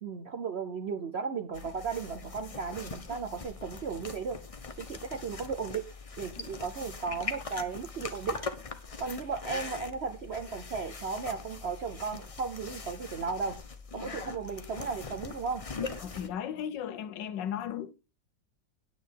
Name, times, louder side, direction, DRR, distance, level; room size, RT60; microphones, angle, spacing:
voice 1, 0.0-4.4 4.9-5.9 6.2-8.4 9.0-13.6 13.9-15.6, right 5 dB, 60° right, 0.6 m, -35 dB
sound 1, 1.5-16.3, left 4 dB, 35° left, 0.5 m, -41 dB
voice 2, 16.0-17.9, left 9 dB, 80° left, 1.5 m, -36 dB
9.5 x 8.7 x 4.5 m
omnidirectional pair, 1.9 m